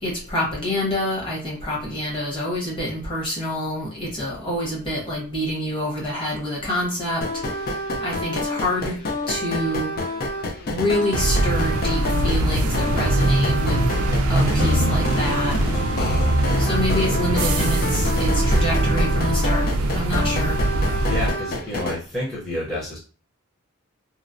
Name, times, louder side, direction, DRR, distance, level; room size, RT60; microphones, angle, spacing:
voice 1, 0.0-7.2 8.0-9.0 9.3-9.9 10.7-13.8 14.3-15.5 16.6-19.6 19.9-20.6, left 1 dB, 25° left, -4 dB, 1.0 m, -26 dB
sound 1, 7.2-22.0, left 1 dB, 45° left, 0.4 m, -28 dB
sound 2, 11.1-21.3, right 1 dB, 85° right, 0.4 m, -22 dB
voice 2, 21.1-23.0, left 1 dB, 5° left, -8 dB, 0.7 m, -29 dB
3.0 x 2.0 x 2.5 m, 0.37 s
head